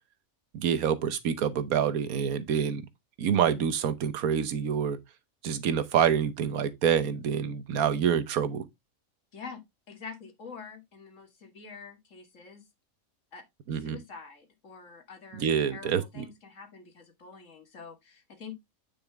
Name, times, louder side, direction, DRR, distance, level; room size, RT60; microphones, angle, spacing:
voice 1, 0.5-2.8 3.2-5.0 5.4-8.6 13.7-14.0 15.3-16.2, right 8 dB, 90° right, 1.4 m, -27 dB
voice 2, 9.3-12.7 13.3-18.5, left 5 dB, 60° left, 2.0 m, -46 dB
9.0 x 5.2 x 3.4 m
omnidirectional pair, 1.5 m